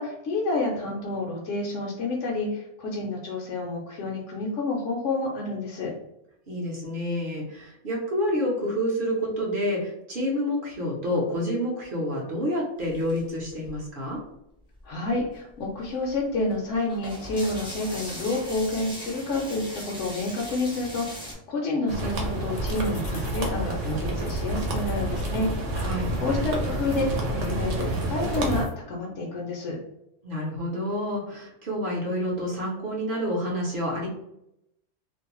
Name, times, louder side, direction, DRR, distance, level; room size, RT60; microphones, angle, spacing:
voice 1, 0.0-5.9 14.8-25.5 26.2-29.8, left 2 dB, 70° left, -2 dB, 0.9 m, -29 dB
voice 2, 6.5-14.2 25.8-26.1 30.2-34.1, equal, 50° right, -3 dB, 0.7 m, -28 dB
sound 1, 12.8-14.1 14.7-14.8 15.1-21.3, equal, 5° right, 0.4 m, -39 dB
sound 2, 21.9-28.7, left 3 dB, 55° left, 0.4 m, -48 dB
sound 3, 21.9-28.7, right 1 dB, 75° right, 1.0 m, -28 dB
2.5 x 2.0 x 2.9 m, 0.83 s
omnidirectional pair, 1.3 m